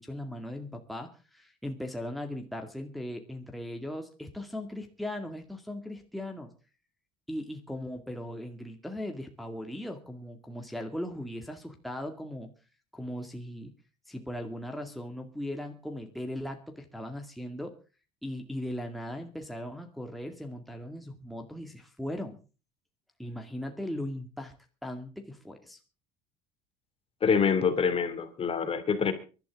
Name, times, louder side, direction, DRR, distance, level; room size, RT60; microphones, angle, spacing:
voice 1, 0.0-6.5 7.3-12.5 12.9-13.7 14.1-17.7 18.2-22.4 23.2-24.5 24.8-25.8, left 1 dB, ahead, 3 dB, 2.2 m, -38 dB
voice 2, 27.2-29.1, left 6 dB, 35° left, 10 dB, 2.7 m, -26 dB
23.5 x 12.0 x 3.7 m, 0.34 s
supercardioid pair, 105°, 17 cm